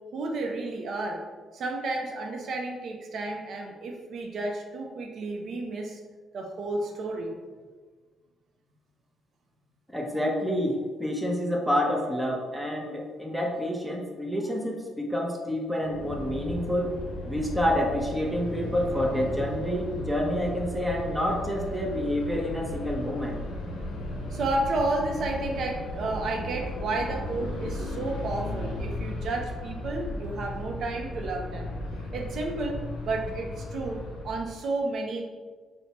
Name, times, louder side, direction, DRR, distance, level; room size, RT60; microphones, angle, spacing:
voice 1, 0.1-1.2 1.5-6.0 6.3-7.3 24.3-31.7 32.1-35.2, right 2 dB, 65° right, 2 dB, 0.4 m, -31 dB
voice 2, 9.9-17.0 17.2-23.4, equal, 5° right, -1 dB, 0.6 m, -28 dB
sound 1, 15.8-34.6, left 1 dB, 85° left, 0.5 m, -36 dB
4.4 x 2.0 x 2.8 m, 1.4 s
cardioid pair, 90°, 0 cm